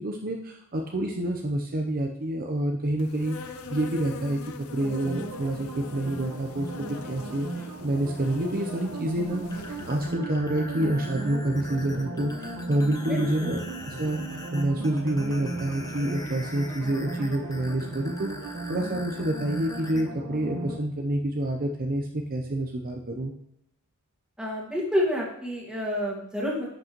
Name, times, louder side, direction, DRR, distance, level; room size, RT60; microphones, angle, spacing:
voice 1, 0.0-9.4 9.9-13.6 13.9-14.2 14.5-23.3, right 1 dB, 40° right, 2 dB, 0.7 m, -28 dB
Insect, 3.0-10.2, left 4 dB, 65° left, 0.7 m, -43 dB
sound 1, 4.8-20.8, right 2 dB, 85° right, 1.5 m, -37 dB
sound 2, 9.4-20.0, left 2 dB, 15° left, 0.8 m, -44 dB
voice 2, 13.1-13.6 24.4-26.7, left 1 dB, 5° right, -4 dB, 2.0 m, -29 dB
10.0 x 6.2 x 3.0 m, 0.78 s
head